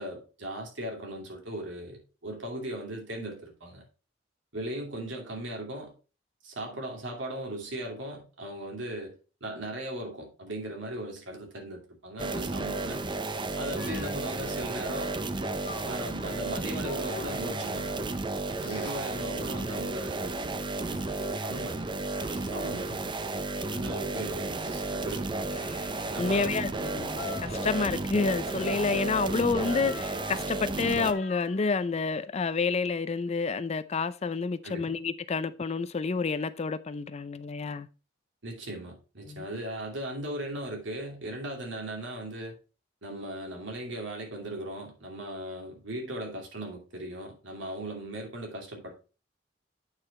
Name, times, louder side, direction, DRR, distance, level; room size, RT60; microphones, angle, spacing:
voice 1, 0.0-3.8 4.5-5.9 6.4-9.2 9.4-13.0 13.6-15.2 15.8-18.0 18.6-20.4 20.9-21.9 22.5-23.1 23.7-25.6 26.1-26.7 27.1-27.2 34.6-35.0 38.4-42.6 43.0-48.9, right 1 dB, 80° right, 2.6 m, -38 dB
sound 1, 12.2-31.1, right 2 dB, 25° right, 0.6 m, -33 dB
sound 2, 13.7-18.2 18.6-20.1 20.8-21.7 22.1-23.1 23.7-26.5 27.1-28.1 28.5-31.9, left 5 dB, 50° left, 0.8 m, -47 dB
voice 2, 26.2-37.9 39.3-39.4, left 4 dB, 35° left, 0.4 m, -29 dB
8.6 x 4.9 x 4.2 m
head